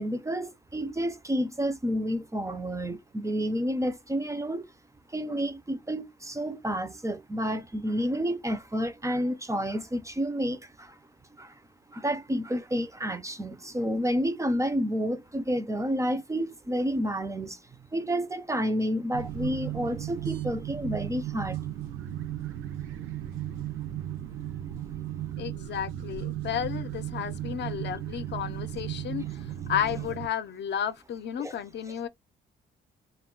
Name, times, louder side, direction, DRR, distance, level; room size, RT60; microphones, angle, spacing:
voice 1, 0.0-4.7 5.1-11.0 11.4-11.5 11.9-17.6 17.9-21.6 31.4-31.5, equal, 15° right, 0.4 m, -30 dB
sound 1, 19.1-30.3, right 12 dB, 90° right, 0.5 m, -35 dB
voice 2, 25.4-29.2 29.7-32.1, left 9 dB, 60° left, 0.6 m, -32 dB
2.3 x 2.1 x 3.7 m
cardioid pair, 90°, 20 cm